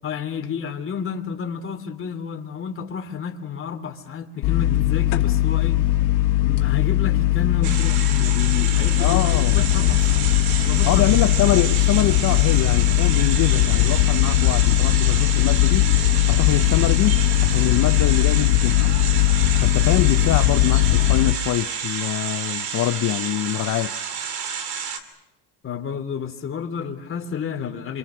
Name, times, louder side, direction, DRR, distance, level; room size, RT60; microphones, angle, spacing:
voice 1, 0.0-5.8 6.4-10.3 10.6-11.1 25.6-28.0, left 7 dB, 30° left, 3.1 m, -31 dB
sound 1, 4.4-21.3, left 16 dB, 85° left, 1.9 m, -19 dB
sound 2, 7.6-25.0, right 7 dB, 70° right, 3.1 m, -30 dB
voice 2, 9.0-9.6 10.9-15.9 16.3-18.9 19.6-24.0, left 13 dB, 50° left, 0.9 m, -24 dB
27.5 x 27.0 x 6.3 m
cardioid pair, 120°, 39 cm